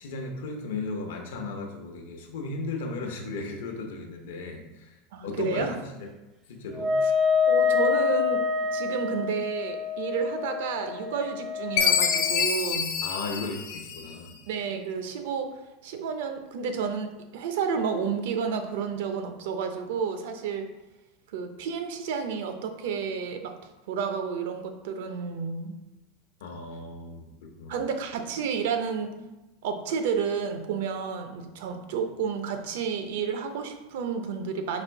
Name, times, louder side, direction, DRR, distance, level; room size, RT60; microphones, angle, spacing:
voice 1, 0.0-4.9 5.2-6.1 6.5-7.0 13.0-14.4 26.4-27.3 27.6-27.8, left 3 dB, 90° left, 3 dB, 0.8 m, -35 dB
voice 2, 5.1-5.7 7.5-8.4 8.7-12.9 14.5-15.5 15.8-20.7 21.3-23.5 23.9-25.7 27.7-29.2 29.6-34.8, right 6 dB, 75° right, 6 dB, 0.6 m, -31 dB
Wind instrument woodwind instrument, 6.8-12.4, left 6 dB, 20° right, 0.3 m, -27 dB
Chime, 11.8-14.3, left 7 dB, 50° left, 0.5 m, -26 dB
4.2 x 2.6 x 4.5 m, 1.0 s
supercardioid pair, 155°, 0 cm